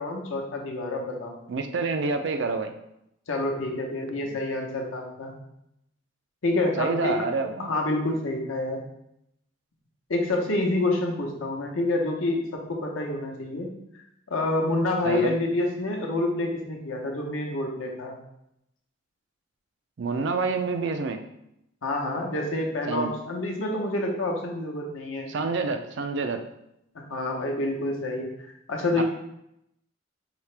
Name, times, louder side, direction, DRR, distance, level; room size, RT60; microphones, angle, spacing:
voice 1, 0.0-1.4 3.3-5.3 6.4-7.2 7.6-8.8 10.1-13.7 14.3-18.2 21.8-25.3 26.9-28.3 28.7-29.0, left 2 dB, 85° left, 1 dB, 0.8 m, -28 dB
voice 2, 1.5-2.7 6.8-7.7 15.0-15.3 20.0-21.2 22.9-23.1 25.3-26.4 29.0-29.1, right 4 dB, 60° right, 6 dB, 0.4 m, -27 dB
4.9 x 2.8 x 3.3 m, 0.81 s
head